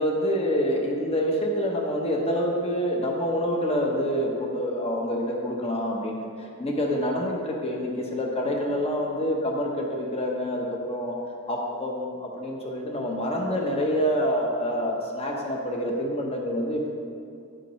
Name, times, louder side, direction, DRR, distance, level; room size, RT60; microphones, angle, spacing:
voice 1, 0.0-11.2 11.5-16.9, equal, 25° left, 0 dB, 0.9 m, -27 dB
10.0 x 7.5 x 3.1 m, 2.4 s
head